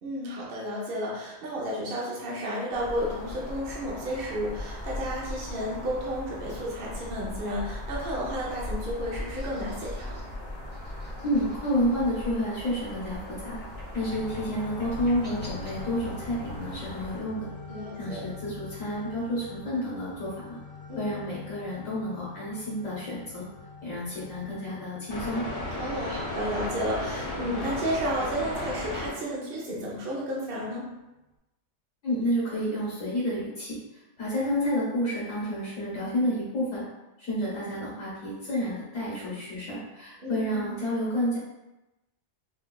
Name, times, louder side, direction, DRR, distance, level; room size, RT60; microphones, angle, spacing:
voice 1, 0.0-10.2 17.7-18.2 20.9-21.2 25.8-30.9 40.2-40.7, equal, 55° right, -4 dB, 0.8 m, -32 dB
sound 1, 2.7-17.2, left 1 dB, 15° left, 1.0 m, -39 dB
voice 2, 11.2-13.6 13.9-17.5 17.9-20.6 21.0-23.4 23.8-25.4 32.0-36.8 37.2-41.4, equal, 90° left, -8 dB, 1.6 m, -30 dB
sound 2, 14.0-29.1, left 2 dB, 65° left, 1.7 m, -38 dB
4.5 x 2.2 x 2.2 m, 0.99 s
omnidirectional pair, 1.3 m